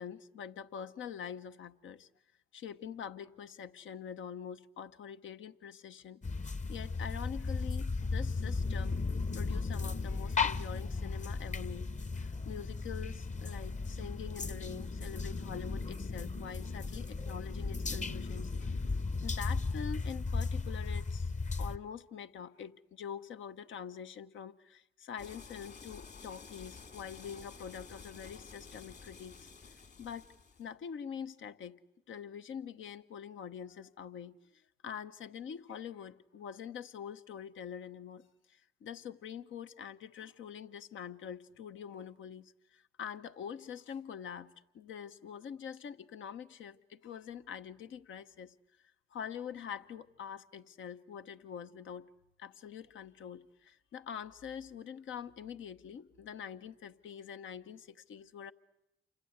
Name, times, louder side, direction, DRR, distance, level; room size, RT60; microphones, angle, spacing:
voice 1, 0.0-2.1 2.5-9.0 9.3-11.9 12.2-18.8 19.2-21.3 21.6-29.5 30.0-30.3 30.6-31.8 32.1-52.1 52.4-58.5, left 8 dB, 75° left, 1.0 m, -45 dB
sound 1, 6.2-21.8, left 4 dB, 35° left, 1.0 m, -36 dB
sound 2, 25.2-30.7, left 5 dB, 55° left, 3.7 m, -52 dB
29.0 x 25.5 x 8.0 m
supercardioid pair, 45°, 20 cm